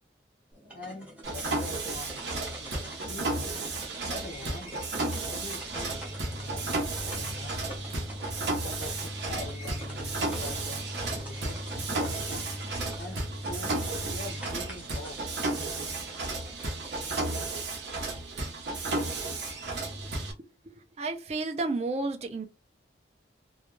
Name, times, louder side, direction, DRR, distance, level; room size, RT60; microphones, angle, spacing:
sound 1, 0.5-17.5, right 1 dB, 10° right, 0.7 m, -48 dB
voice 1, 0.7-3.5 4.1-4.9 5.2-7.8 8.6-12.4 13.0-15.2, left 2 dB, 55° left, 0.4 m, -44 dB
Mechanisms, 1.2-20.3, right 2 dB, 70° right, 0.7 m, -33 dB
voice 2, 20.6-22.5, right 3 dB, 35° right, 0.4 m, -32 dB
2.2 x 2.1 x 3.0 m
head